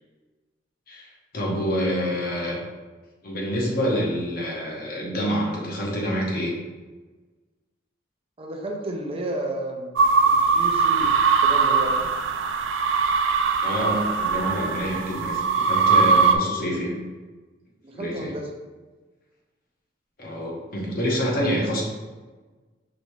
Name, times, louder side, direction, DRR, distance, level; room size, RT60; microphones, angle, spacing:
voice 1, 0.9-2.6 3.2-6.5 13.6-17.0 17.9-18.3 20.2-21.8, equal, 50° left, -2 dB, 1.0 m, -27 dB
voice 2, 8.4-9.9 10.2-11.1 11.4-12.1 17.8-18.5, right 1 dB, 30° right, 2 dB, 0.5 m, -32 dB
sound 1, 10.0-16.4, right 5 dB, 90° right, 0.4 m, -21 dB
5.1 x 3.3 x 3.1 m, 1.3 s
head